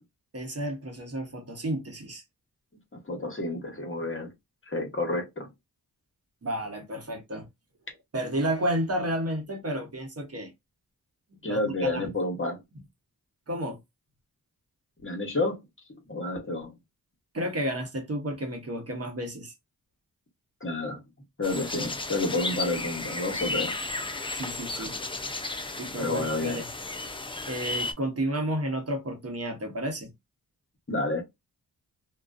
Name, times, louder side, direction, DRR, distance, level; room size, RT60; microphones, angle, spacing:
voice 1, 0.3-2.2 6.4-7.4 8.1-10.5 11.4-12.1 13.5-13.8 17.3-19.5 24.3-24.9 25.8-26.6 27.5-30.1, right 1 dB, 40° right, 0.9 m, -31 dB
voice 2, 2.9-4.3 4.7-5.5 11.4-12.6 15.0-15.6 16.1-16.7 20.6-21.0 21.4-23.8 24.8-24.9 26.0-26.6 30.9-31.2, left 2 dB, 35° left, 1.1 m, -30 dB
sound 1, 21.4-27.9, left 3 dB, 15° left, 0.4 m, -34 dB
2.4 x 2.2 x 2.4 m
cardioid pair, 55°, 37 cm